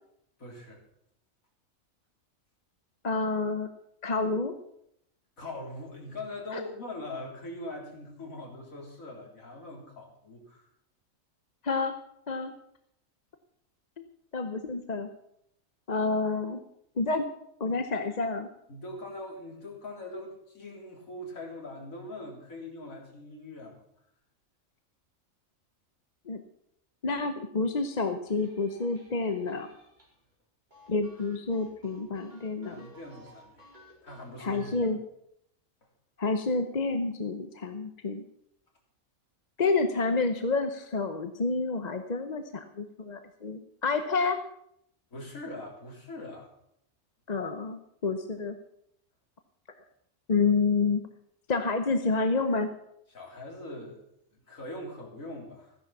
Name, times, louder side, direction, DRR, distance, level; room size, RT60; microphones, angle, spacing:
voice 1, 0.4-0.8 5.4-10.7 18.7-23.8 32.7-33.7 34.0-34.8 45.1-46.5 53.1-54.0 54.5-55.8, left 1 dB, 80° left, 0 dB, 3.8 m, -42 dB
voice 2, 3.0-3.7 4.0-4.5 6.5-6.6 11.6-11.9 12.3-12.5 14.3-15.1 15.9-16.6 17.0-17.3 17.6-18.5 26.3-26.4 27.0-29.7 30.9-32.9 34.4-35.0 36.2-38.2 39.6-44.4 47.3-48.6 50.3-51.0 51.5-52.7, left 3 dB, 35° left, 8 dB, 0.8 m, -29 dB
sound 1, 28.2-30.3 30.7-34.8, left 1 dB, 35° right, 4.5 m, -55 dB
15.0 x 10.0 x 5.8 m, 0.74 s
omnidirectional pair, 1.4 m